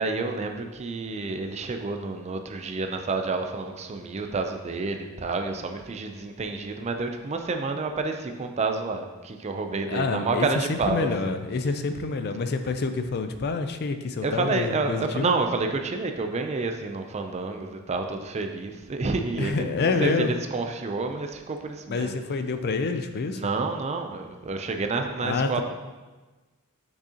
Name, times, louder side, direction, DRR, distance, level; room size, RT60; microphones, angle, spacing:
voice 1, 0.0-11.4 14.2-22.1 23.3-25.6, right 3 dB, 30° right, 5 dB, 0.4 m, -29 dB
voice 2, 9.9-15.3 19.4-20.3 21.9-23.4 25.2-25.6, left 4 dB, 45° left, 8 dB, 0.4 m, -27 dB
6.2 x 6.2 x 2.8 m, 1.2 s
head